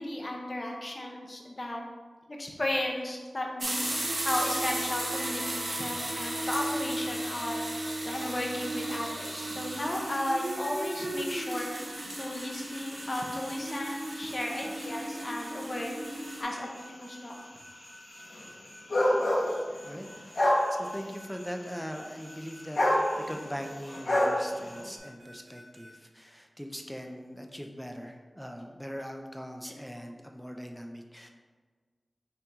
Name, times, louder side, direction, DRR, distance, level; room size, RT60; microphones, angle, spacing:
voice 1, 0.0-1.8 2.4-3.8 4.2-11.7 12.2-15.9 16.4-17.4 29.6-29.7, left 1 dB, 40° left, 0 dB, 0.8 m, -34 dB
sound 1, 3.6-16.4, right 1 dB, 55° right, 1.0 m, -35 dB
sound 2, 6.6-25.9, equal, 85° right, 1.3 m, -53 dB
sound 3, 7.0-25.0, left 1 dB, 60° left, 1.2 m, -34 dB
voice 2, 19.8-31.3, equal, ahead, 3 dB, 0.5 m, -41 dB
5.7 x 2.6 x 3.6 m, 1.4 s
wide cardioid pair, 90°, 0 cm